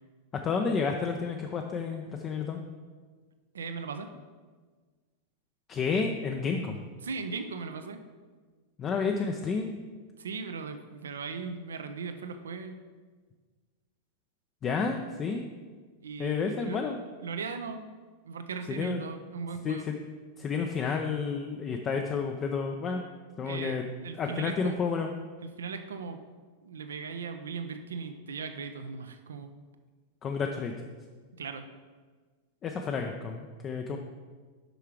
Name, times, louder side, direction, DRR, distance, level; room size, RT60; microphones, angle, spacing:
voice 1, 0.4-2.6 5.7-6.8 8.8-9.8 14.6-15.5 16.2-17.0 18.8-19.0 19.6-20.0 20.4-23.0 23.4-23.8 24.2-25.1 30.2-30.7 32.6-34.0, left 5 dB, 25° left, 3 dB, 0.6 m, -30 dB
voice 2, 3.5-4.1 7.0-8.0 10.2-12.8 16.0-16.8 17.2-17.9 18.2-19.8 23.4-24.8 25.4-26.2 26.6-29.5 31.4-31.7, right 5 dB, 65° right, 8 dB, 0.6 m, -38 dB
7.9 x 5.7 x 4.8 m, 1.4 s
figure-of-eight pair, 90°, 0 cm